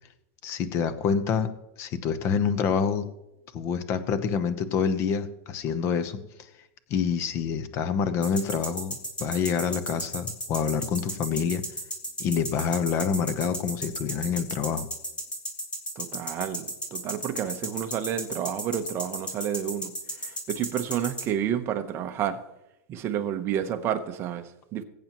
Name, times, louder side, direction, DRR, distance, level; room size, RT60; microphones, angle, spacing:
voice 1, 0.4-1.5 1.8-3.0 3.5-6.2 6.9-11.6 12.2-14.9, left 6 dB, 30° left, 12 dB, 0.9 m, -27 dB
sound 1, 8.2-21.2, right 1 dB, 10° left, 2.2 m, -33 dB
voice 2, 16.0-22.4 22.9-24.8, right 9 dB, 30° right, 7 dB, 0.9 m, -30 dB
21.0 x 8.7 x 3.1 m, 0.88 s
supercardioid pair, 155°, 9 cm